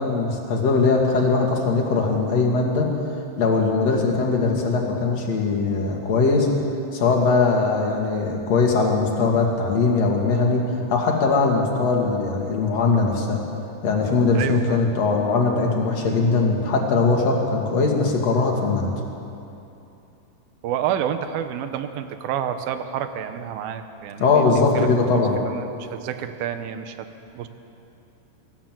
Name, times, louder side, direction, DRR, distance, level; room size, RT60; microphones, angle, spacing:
voice 1, 0.0-2.9 3.4-6.5 6.9-10.6 10.9-13.4 13.8-18.9 24.2-25.4, left 4 dB, 50° left, 0 dB, 3.2 m, -20 dB
voice 2, 14.3-14.8 20.6-24.5 24.7-24.9 25.4-27.1 27.3-27.5, right 9 dB, 85° right, 9 dB, 2.8 m, -29 dB
24.5 x 14.0 x 7.7 m, 2.8 s
omnidirectional pair, 4.2 m